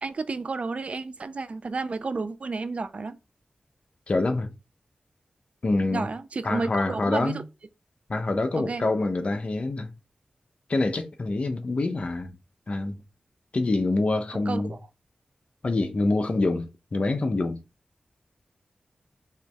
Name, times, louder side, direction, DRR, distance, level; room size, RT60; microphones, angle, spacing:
voice 1, 0.0-3.2 5.9-7.4 8.6-8.8 14.5-14.8, right 3 dB, 55° right, 0.4 m, -31 dB
voice 2, 4.1-4.5 5.6-6.1 6.4-7.4 8.1-9.9 10.7-12.4 12.7-13.0 13.5-14.8 15.6-17.6, left 2 dB, 55° left, 0.8 m, -26 dB
4.7 x 3.1 x 3.4 m
wide cardioid pair, 70°, 3 cm